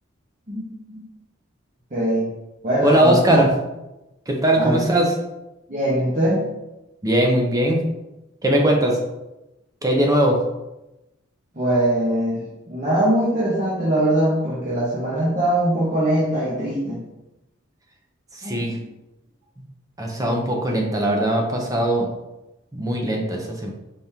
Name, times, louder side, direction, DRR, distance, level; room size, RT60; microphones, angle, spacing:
voice 1, 0.5-1.0 1.9-2.3 2.6-3.4 4.6-4.8 5.7-6.4 7.0-7.1 11.5-17.0 18.4-18.8, right 1 dB, 40° right, -9 dB, 1.1 m, -22 dB
voice 2, 2.8-3.5 4.3-5.1 7.0-7.8 8.4-9.0 9.8-10.4 18.4-18.8 20.0-22.1 22.7-23.7, right 1 dB, 20° right, 1 dB, 0.7 m, -20 dB
5.3 x 3.6 x 2.8 m, 0.97 s
head